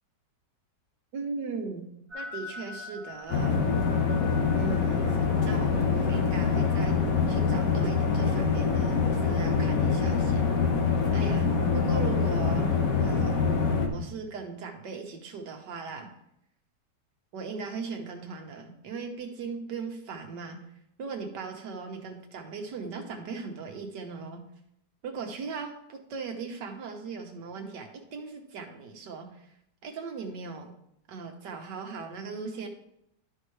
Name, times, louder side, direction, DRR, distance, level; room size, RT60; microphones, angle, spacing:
voice 1, 1.1-1.9 2.1-3.7 4.6-10.5 11.1-12.7 13.0-13.4 13.9-16.2 17.3-20.6 21.0-24.4 25.0-29.5 29.8-30.7 31.1-32.7, right 4 dB, 85° right, 4 dB, 1.7 m, -38 dB
sound 1, 2.1-7.5, left 3 dB, ahead, 2.8 m, -45 dB
sound 2, 3.3-13.9, left 5 dB, 60° left, 1.4 m, -25 dB
12.0 x 5.6 x 3.2 m, 0.78 s
omnidirectional pair, 1.8 m